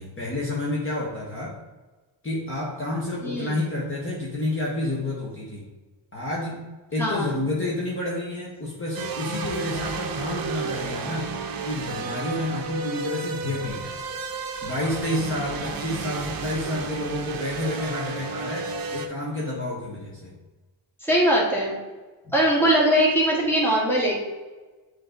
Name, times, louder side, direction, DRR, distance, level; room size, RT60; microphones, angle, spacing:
voice 1, 0.0-1.6 2.2-5.7 6.1-6.6 6.9-11.3 11.6-14.0 14.6-20.3 22.3-22.4, left 1 dB, 25° left, -5 dB, 1.3 m, -29 dB
voice 2, 3.2-3.6 7.0-7.4 15.6-15.8 21.0-21.7 22.3-24.2, right 1 dB, 5° left, -4 dB, 1.8 m, -21 dB
sound 1, 8.9-19.1, right 4 dB, 45° right, 0.8 m, -32 dB
7.6 x 3.2 x 3.9 m, 1.2 s
cardioid pair, 120°, 50 cm